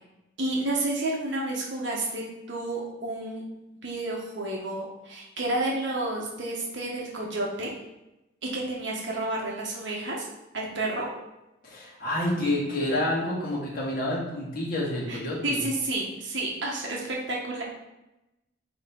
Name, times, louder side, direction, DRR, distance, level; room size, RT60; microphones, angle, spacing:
voice 1, 0.4-3.4 3.8-7.7 8.4-10.3 10.5-11.1 15.1-17.6, right 2 dB, 75° right, -2 dB, 1.2 m, -30 dB
voice 2, 11.6-15.6, left 1 dB, 50° left, -5 dB, 2.0 m, -28 dB
8.8 x 3.2 x 3.8 m, 0.94 s
head